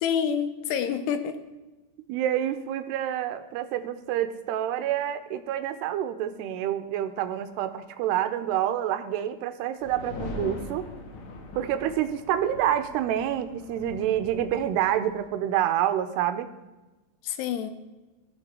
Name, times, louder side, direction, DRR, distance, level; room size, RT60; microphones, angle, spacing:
voice 1, 0.0-1.4 17.2-17.7, left 8 dB, 85° left, 8 dB, 2.9 m, -27 dB
voice 2, 2.1-10.8 11.6-16.5, right 11 dB, 85° right, 10 dB, 2.8 m, -27 dB
sound 1, 9.8-15.3, left 3 dB, 70° left, 1.8 m, -41 dB
16.5 x 6.8 x 4.3 m, 1.1 s
omnidirectional pair, 4.7 m